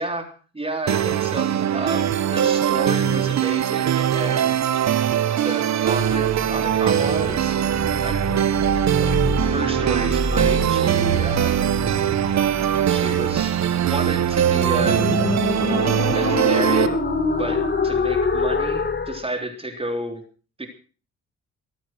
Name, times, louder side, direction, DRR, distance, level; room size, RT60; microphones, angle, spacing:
voice 1, 0.0-4.8 5.4-7.6 8.0-8.2 9.0-11.6 12.9-15.1 15.7-17.0 17.4-20.2 20.6-20.7, right 1 dB, 20° right, 5 dB, 3.6 m, -31 dB
sound 1, 0.9-16.9, right 10 dB, 65° right, 1.6 m, -21 dB
sound 2, 6.0-19.2, left 3 dB, 35° left, 4.1 m, -27 dB
22.0 x 9.2 x 6.2 m, 0.38 s
cardioid pair, 90°, 30 cm